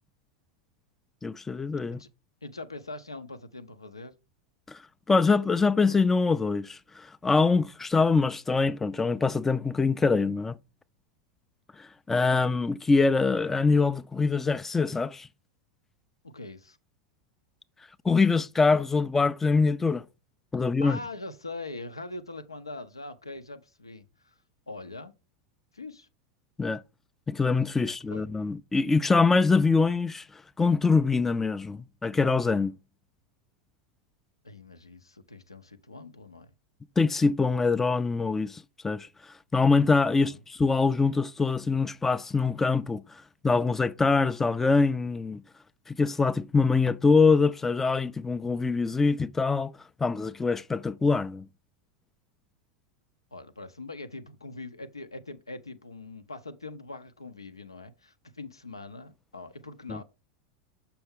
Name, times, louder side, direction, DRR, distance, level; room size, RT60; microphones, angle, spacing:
voice 1, 1.2-2.0 4.7-4.8 5.1-10.5 11.8-15.3 18.0-20.0 20.5-21.0 26.6-26.8 27.3-30.2 30.6-32.7 37.0-39.1 39.5-43.0 43.4-45.4 45.9-49.7 50.0-51.4 59.9-60.0, left 4 dB, 10° left, 0.3 m, -24 dB
voice 2, 2.4-4.1 16.2-16.8 20.6-24.3 24.7-25.1 25.7-26.1 27.9-28.3 34.4-36.5 40.1-40.4 53.3-60.0, left 3 dB, 90° left, 0.6 m, -42 dB
6.9 x 5.7 x 3.6 m
figure-of-eight pair, 85°, 2 cm